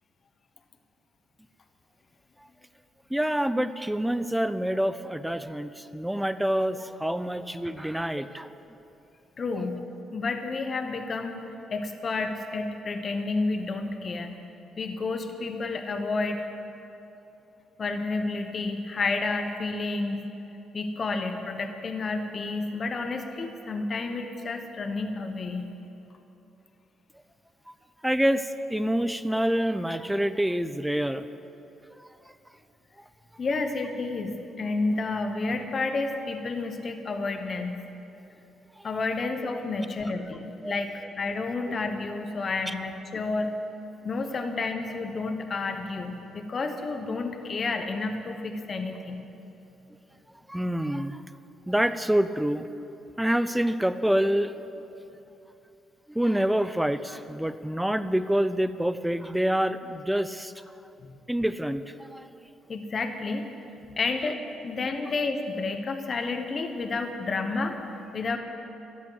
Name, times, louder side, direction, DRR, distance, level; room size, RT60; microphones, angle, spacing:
voice 1, 3.1-8.5 28.0-31.2 32.0-32.1 33.0-33.1 38.8-38.9 40.6-40.7 42.7-42.8 50.5-51.2 51.7-52.7 53.2-54.8 56.1-60.5 61.3-62.3, equal, 5° right, 12 dB, 0.6 m, -27 dB
voice 2, 9.4-11.4 11.7-14.3 14.8-16.5 17.8-20.2 20.7-25.7 33.4-37.9 38.8-43.6 44.0-49.2 61.0-61.1 62.7-63.5 64.0-68.4, left 3 dB, 45° left, 6 dB, 1.2 m, -30 dB
13.5 x 10.5 x 8.1 m, 2.9 s
cardioid pair, 90°, 0 cm